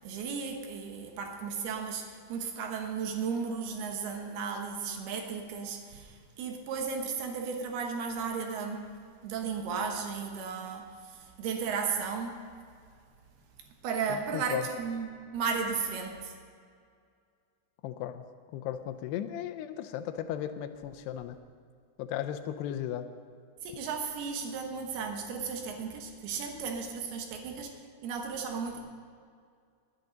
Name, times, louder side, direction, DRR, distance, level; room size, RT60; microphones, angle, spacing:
voice 1, 0.0-8.9 9.2-12.4 13.8-16.3 23.6-27.7 28.0-28.8, right 5 dB, 75° right, 3 dB, 3.1 m, -35 dB
voice 2, 14.1-14.7 17.8-21.4 22.0-23.1, left 10 dB, 90° left, 9 dB, 2.8 m, -36 dB
20.0 x 9.8 x 3.9 m, 2.2 s
omnidirectional pair, 4.7 m